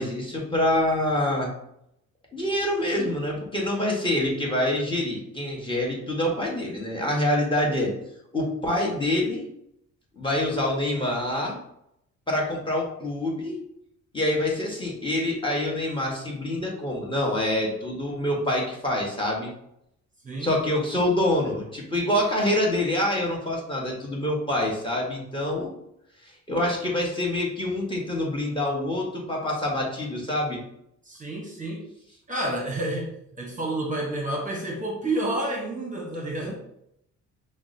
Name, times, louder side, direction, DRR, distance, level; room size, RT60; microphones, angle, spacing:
voice 1, 0.0-1.5 2.3-7.9 8.3-9.5 10.2-11.6 12.3-13.6 14.1-19.5 20.4-25.7 26.5-30.6 36.4-36.6, left 1 dB, 15° left, -2 dB, 1.1 m, -26 dB
voice 2, 31.0-31.8 32.3-36.6, right 1 dB, 25° right, -1 dB, 0.8 m, -30 dB
5.6 x 2.1 x 2.5 m, 0.76 s
cardioid pair, 90°, 30 cm